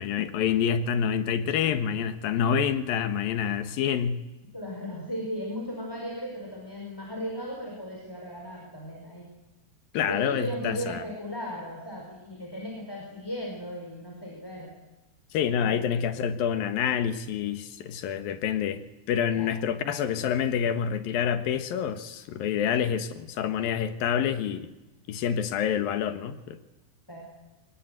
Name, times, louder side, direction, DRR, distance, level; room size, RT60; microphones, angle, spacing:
voice 1, 0.0-4.2 9.9-11.0 15.3-18.8 19.1-24.7 25.1-26.6, left 8 dB, 70° left, 11 dB, 3.0 m, -27 dB
voice 2, 4.5-9.3 10.0-14.7 15.6-15.9 19.3-19.5 27.1-27.2, equal, 5° left, 0 dB, 4.6 m, -36 dB
24.5 x 20.5 x 9.4 m, 1.0 s
omnidirectional pair, 4.6 m